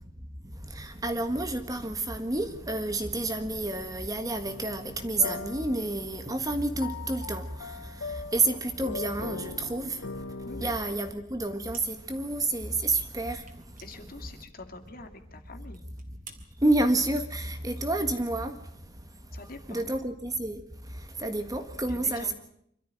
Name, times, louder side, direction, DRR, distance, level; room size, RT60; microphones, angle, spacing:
voice 1, 0.7-10.0 10.6-13.5 16.6-18.5 19.7-20.6 21.2-22.3, right 2 dB, 15° right, 1.6 m, -29 dB
sound 1, 4.5-10.7, left 4 dB, 75° left, 0.9 m, -40 dB
sound 2, 11.7-12.3 12.5-12.6 13.4-14.8 15.2-15.3 15.7-16.4, right 6 dB, 40° right, 3.1 m, -50 dB
voice 2, 13.8-15.8 19.3-19.9 21.9-22.3, left 3 dB, 45° left, 2.3 m, -45 dB
26.0 x 13.5 x 9.0 m
head